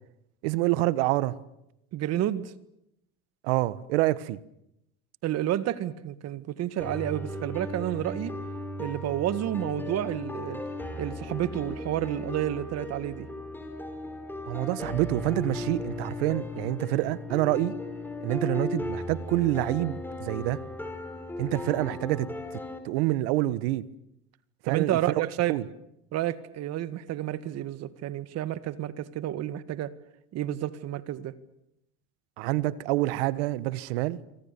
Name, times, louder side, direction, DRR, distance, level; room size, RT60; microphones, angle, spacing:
voice 1, 0.4-1.3 3.4-4.4 14.5-17.8 18.2-20.6 21.4-22.3 22.8-23.9 24.6-25.1 25.5-25.6 32.4-34.2, right 17 dB, 80° right, 1.3 m, -27 dB
voice 2, 1.9-2.5 5.2-8.3 8.8-10.6 11.0-13.3 24.6-25.6 26.1-29.9 30.3-31.3, right 13 dB, 55° right, 2.0 m, -30 dB
sound 1, 6.8-22.8, left 2 dB, 5° left, 5.1 m, -36 dB
26.0 x 24.5 x 7.0 m
supercardioid pair, 100°, 31 cm